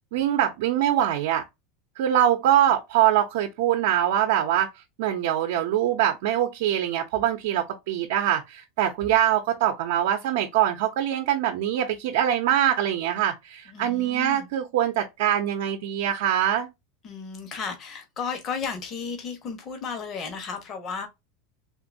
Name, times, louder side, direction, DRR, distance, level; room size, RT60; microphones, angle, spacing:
voice 1, 0.1-1.4 2.0-4.7 5.0-16.7, right 11 dB, 70° right, 0.7 m, -23 dB
voice 2, 13.7-14.5 17.0-21.1, left 5 dB, 35° left, 1.0 m, -34 dB
3.7 x 2.6 x 2.6 m
supercardioid pair, 140°, 0 cm